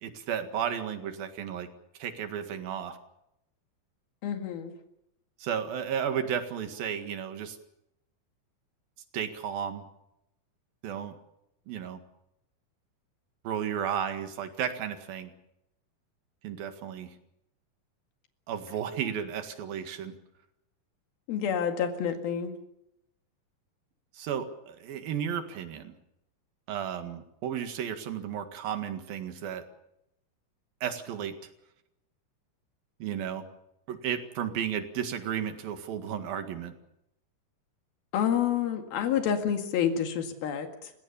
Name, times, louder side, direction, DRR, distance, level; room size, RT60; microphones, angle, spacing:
voice 1, 0.0-1.7 2.0-3.0 5.4-7.6 9.1-9.8 10.8-11.2 11.7-12.0 13.5-15.3 16.4-17.1 18.5-20.1 24.1-25.9 26.7-29.6 30.8-31.4 33.0-33.5 33.9-36.7, right 8 dB, 75° right, 7 dB, 3.7 m, -33 dB
voice 2, 4.2-4.8 21.3-22.5 38.1-40.9, left 8 dB, 80° left, 5 dB, 3.9 m, -28 dB
30.0 x 17.0 x 7.1 m, 0.83 s
omnidirectional pair, 4.2 m